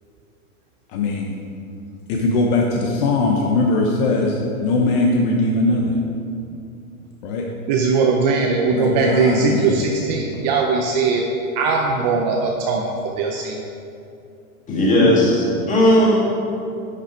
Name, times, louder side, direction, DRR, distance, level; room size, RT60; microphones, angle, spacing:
voice 1, 0.9-1.3 2.1-6.0 7.2-7.5 8.7-9.9 14.7-15.1, left 2 dB, 40° left, 0 dB, 0.9 m, -20 dB
voice 2, 7.7-11.2 11.6-13.6, right 4 dB, 30° right, 1 dB, 0.5 m, -20 dB
voice 3, 14.7-16.2, equal, 15° left, -5 dB, 2.2 m, -16 dB
10.5 x 5.6 x 4.4 m, 2.6 s
hypercardioid pair, 140°, 44 cm